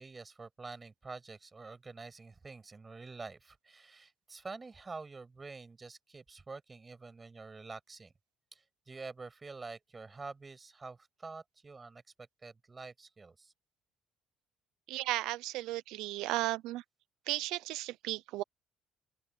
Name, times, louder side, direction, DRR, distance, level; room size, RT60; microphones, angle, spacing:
voice 1, 0.0-8.1 8.5-13.5, right 4 dB, 20° right, 6.7 m, -47 dB
voice 2, 14.9-16.8 17.3-18.4, right 17 dB, 85° right, 0.5 m, -35 dB
open air
cardioid pair, 115°, 0 cm